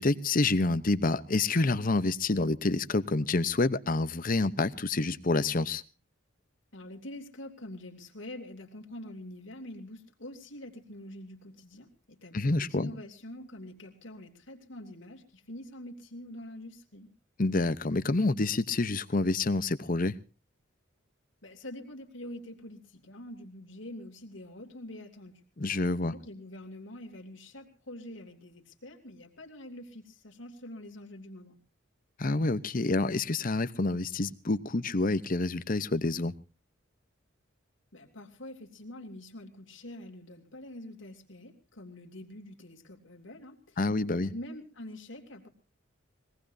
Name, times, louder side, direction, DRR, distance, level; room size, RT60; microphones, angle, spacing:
voice 1, 0.0-5.8 12.3-12.9 17.4-20.1 25.6-26.1 32.2-36.3 43.8-44.3, left 2 dB, 40° left, 14 dB, 0.8 m, -28 dB
voice 2, 6.7-17.1 21.4-25.4 26.0-31.6 37.9-43.8 44.1-45.5, left 1 dB, 65° left, 2 dB, 2.9 m, -45 dB
24.0 x 18.5 x 2.7 m, 0.34 s
head